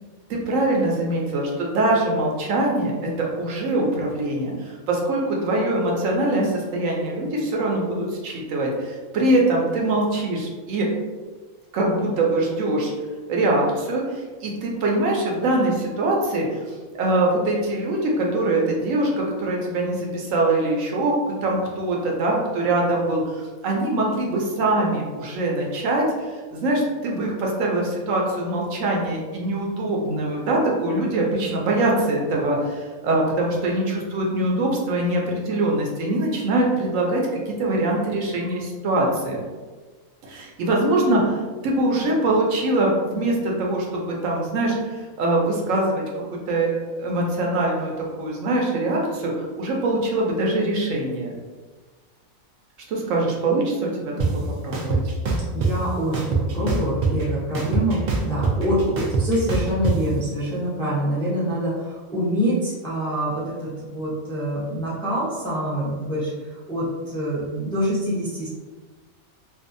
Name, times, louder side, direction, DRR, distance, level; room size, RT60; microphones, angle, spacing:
voice 1, 0.3-2.9 3.2-10.9 11.7-12.9 13.3-16.5 17.0-26.1 26.5-39.4 40.3-41.4 41.6-46.0 46.5-47.9 48.2-51.4 52.9-54.1 54.6-55.0, right 2 dB, 75° right, -2 dB, 0.9 m, -23 dB
sound 1, 54.2-54.3 54.7-55.7 56.1-57.2 57.5-59.9, right 4 dB, 90° right, 0.4 m, -22 dB
voice 2, 55.5-68.5, equal, 5° left, -9 dB, 0.4 m, -26 dB
2.6 x 2.3 x 2.5 m, 1.4 s
omnidirectional pair, 1.4 m